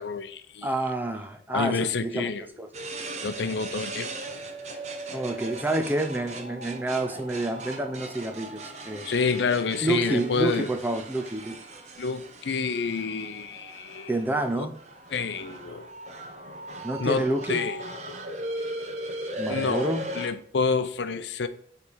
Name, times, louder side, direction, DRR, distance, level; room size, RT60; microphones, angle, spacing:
voice 1, 0.0-0.7 1.5-2.5 3.2-4.1 9.0-10.7 12.0-14.1 14.6-14.7 15.1-15.9 17.0-17.2 17.5-17.8 18.1-18.2 19.5-19.9 20.2-21.5, left 4 dB, 80° left, 0.6 m, -28 dB
voice 2, 0.6-2.3 2.6-2.7 5.1-9.1 9.8-11.6 14.1-14.8 16.8-17.6 19.4-20.0, right 1 dB, 10° right, 0.6 m, -28 dB
sound 1, 2.7-20.3, right 1 dB, 40° right, 0.8 m, -38 dB
6.9 x 3.4 x 4.7 m
head